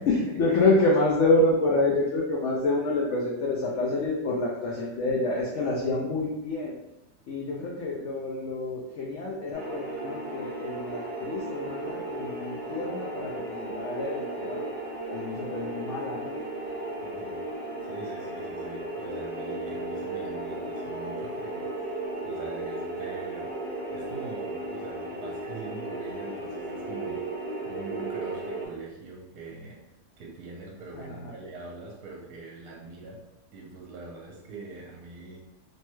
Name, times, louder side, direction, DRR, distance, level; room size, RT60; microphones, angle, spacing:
voice 1, 0.0-6.7 7.3-14.7 15.1-16.4 30.9-31.3, left 2 dB, 75° left, -3 dB, 0.6 m, -27 dB
sound 1, 9.5-28.7, right 2 dB, 45° right, 0.9 m, -35 dB
voice 2, 17.0-17.4 17.8-22.0 22.2-23.5 23.9-27.2 27.6-29.8 30.2-33.2 33.5-35.4, right 3 dB, 75° right, -3 dB, 1.1 m, -43 dB
3.1 x 2.2 x 3.0 m, 0.92 s
omnidirectional pair, 1.7 m